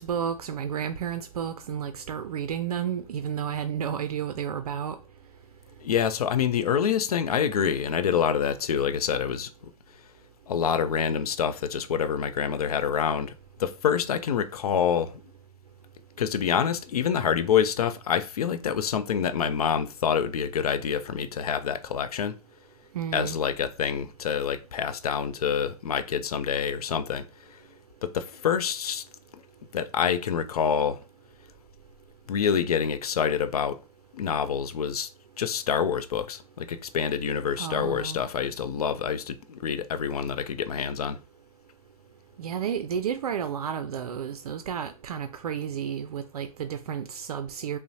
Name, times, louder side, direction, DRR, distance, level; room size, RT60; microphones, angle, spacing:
voice 1, 0.0-5.0 22.9-23.4 37.6-38.2 42.4-47.8, right 8 dB, 85° right, 0.4 m, -31 dB
voice 2, 5.8-9.5 10.5-13.3 13.6-15.2 16.2-22.4 23.1-27.2 27.5-27.6 28.0-29.0 29.7-31.0 32.3-33.8 34.1-35.1 35.4-41.2, left 7 dB, 80° left, 0.5 m, -26 dB
5.4 x 2.1 x 2.7 m
hypercardioid pair, 140°, 19 cm